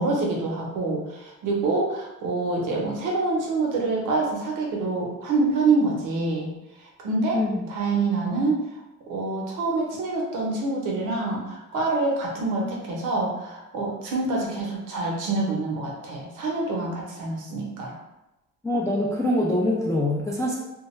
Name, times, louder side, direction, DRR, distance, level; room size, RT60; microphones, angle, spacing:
voice 1, 0.0-6.5 7.0-7.4 7.7-8.6 9.1-18.0, right 3 dB, 85° right, -2 dB, 0.8 m, -26 dB
voice 2, 18.6-20.5, left 1 dB, 10° left, -5 dB, 0.4 m, -24 dB
2.3 x 2.2 x 3.0 m, 0.97 s
cardioid pair, 90°, 30 cm